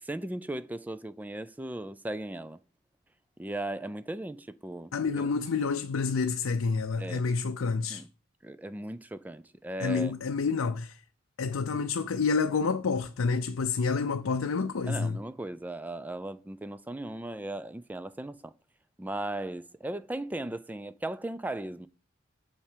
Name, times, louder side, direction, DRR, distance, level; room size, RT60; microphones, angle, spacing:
voice 1, 0.0-2.6 3.4-4.9 5.2-5.3 7.0-7.2 7.9-8.1 8.4-10.1 14.9-18.5 19.0-21.9, right 1 dB, 10° right, 0.3 m, -37 dB
voice 2, 4.9-8.0 9.8-11.0 11.4-15.2, left 4 dB, 85° left, 0.5 m, -28 dB
7.3 x 4.3 x 6.7 m
head